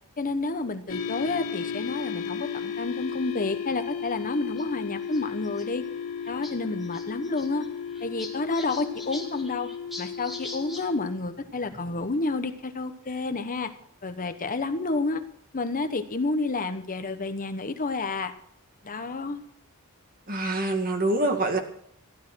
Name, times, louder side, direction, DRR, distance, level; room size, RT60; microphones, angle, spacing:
voice 1, 0.2-5.8 6.3-7.6 8.0-9.7 10.0-13.7 14.0-15.2 15.5-18.3 18.8-19.4, left 3 dB, 40° left, 9 dB, 1.1 m, -30 dB
sound 1, 0.9-11.2, left 6 dB, 80° left, 2.5 m, -34 dB
sound 2, 1.8-2.1 3.0-3.1 3.4-3.5 4.6-4.7 5.0-5.6 6.0-6.1 6.2-6.5 6.8-10.8 11.2-12.2, left 2 dB, ahead, 2.8 m, -43 dB
voice 2, 20.3-21.6, right 2 dB, 40° right, 5 dB, 2.1 m, -25 dB
15.0 x 12.0 x 6.2 m, 0.67 s
head